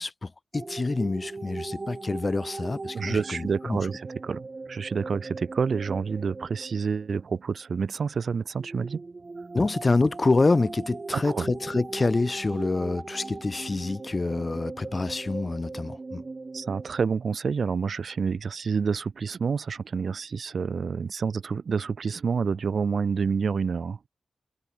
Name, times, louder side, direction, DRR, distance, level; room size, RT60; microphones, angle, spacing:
voice 1, 0.0-3.8 9.5-16.2, left 3 dB, 30° left, 0.6 m, -27 dB
sound 1, 0.5-7.7 8.5-17.0, right 3 dB, 35° right, 2.1 m, -39 dB
voice 2, 2.9-9.0 11.1-11.5 16.5-24.0, right 5 dB, 65° right, 1.3 m, -28 dB
wide cardioid pair, 140°, 0 cm